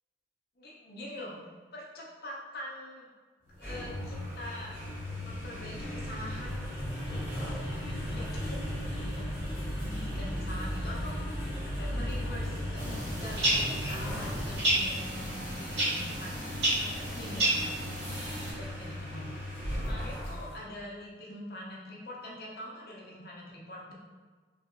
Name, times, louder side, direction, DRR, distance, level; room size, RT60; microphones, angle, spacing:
voice 1, 0.6-1.4 1.7-3.1 3.6-4.8 5.2-6.7 7.3-7.6 8.0-8.6 8.9-9.3 9.7-11.2 11.6-17.7 18.3-23.9, left 1 dB, 55° left, -3 dB, 0.6 m, -44 dB
sound 1, 3.4-20.6, equal, 10° right, 1.5 m, -36 dB
sound 2, 12.7-18.5, right 1 dB, 70° right, 1.4 m, -31 dB
3.1 x 2.8 x 2.6 m, 1.4 s
head